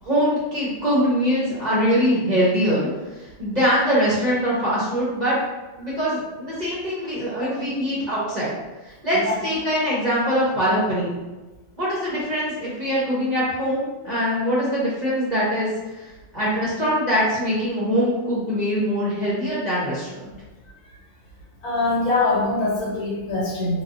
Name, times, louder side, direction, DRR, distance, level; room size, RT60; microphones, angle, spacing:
voice 1, 0.0-2.9 3.2-5.4 5.8-8.5 8.8-11.1 11.8-20.3, equal, 35° right, -8 dB, 0.7 m, -23 dB
voice 2, 21.6-23.8, left 2 dB, 75° left, -4 dB, 1.4 m, -23 dB
3.9 x 2.3 x 2.5 m, 1.1 s
omnidirectional pair, 1.6 m